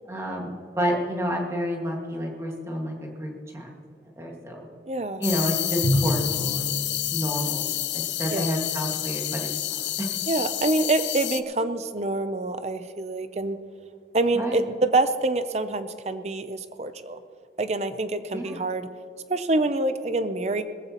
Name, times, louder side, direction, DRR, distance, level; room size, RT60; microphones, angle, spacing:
voice 1, 0.1-3.7 4.2-4.7 5.2-6.7 7.1-10.1 14.3-14.6 18.3-18.6, equal, 15° right, -1 dB, 1.8 m, -30 dB
voice 2, 4.9-5.2 8.3-8.5 10.3-13.6 14.1-17.2 17.6-18.9 19.3-20.6, right 2 dB, 35° right, 11 dB, 0.5 m, -26 dB
sound 1, 5.2-11.4, left 14 dB, 85° left, 0.5 m, -29 dB
Drum, 5.8-7.6, equal, 55° left, 2.7 m, -27 dB
20.0 x 15.0 x 3.0 m, 2.4 s
head